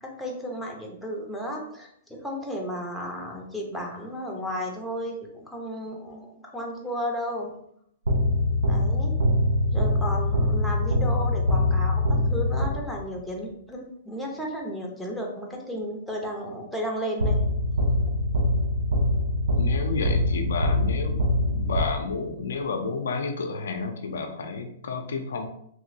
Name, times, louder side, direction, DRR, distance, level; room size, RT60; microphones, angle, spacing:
voice 1, 0.0-7.5 8.6-9.2 9.7-17.4, equal, ahead, -1 dB, 0.7 m, -33 dB
sound 1, 8.1-13.2 17.2-22.4, left 1 dB, 85° right, 0.6 m, -24 dB
voice 2, 19.6-25.5, left 4 dB, 75° left, 4 dB, 0.4 m, -31 dB
3.0 x 2.8 x 2.6 m, 0.70 s
hypercardioid pair, 120°, 0 cm